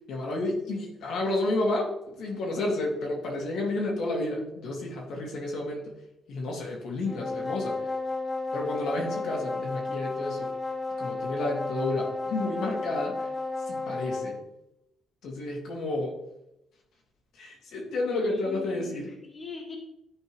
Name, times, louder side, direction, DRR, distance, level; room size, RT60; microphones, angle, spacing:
voice 1, 0.1-5.9 6.3-7.8 8.5-10.5 11.0-13.3 13.7-14.4 15.2-16.2 17.3-19.1, left 2 dB, 75° left, -1 dB, 2.0 m, -31 dB
sound 1, 7.0-14.4, left 3 dB, 20° left, 1.1 m, -33 dB
voice 2, 18.1-19.8, left 4 dB, 35° left, 0 dB, 1.3 m, -42 dB
10.5 x 4.5 x 3.0 m, 0.87 s
cardioid pair, 90°, 0 cm